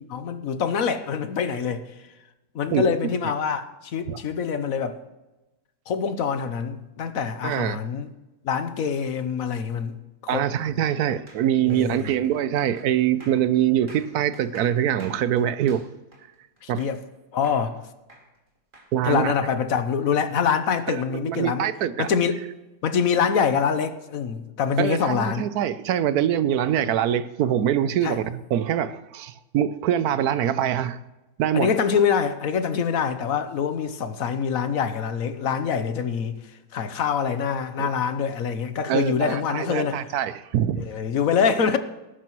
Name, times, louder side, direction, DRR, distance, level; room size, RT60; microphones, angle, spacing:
voice 1, 0.0-1.9 2.5-5.0 5.9-8.1 8.4-10.0 10.2-10.4 11.7-12.1 16.6-17.0 17.3-17.8 19.0-21.7 22.0-22.3 22.8-25.5 28.0-28.2 31.5-36.4 36.7-40.0 40.8-41.8, left 6 dB, 60° left, 1.2 m, -25 dB
voice 2, 7.4-7.8 10.3-15.9 16.7-16.9 18.9-19.3 20.9-22.1 24.8-31.0 31.4-31.7 37.8-37.9 38.9-40.8, right 10 dB, 75° right, 1.1 m, -24 dB
sound 1, 11.3-17.1 17.4-18.9, right 1 dB, 30° right, 2.6 m, -50 dB
19.5 x 11.5 x 3.1 m
omnidirectional pair, 1.7 m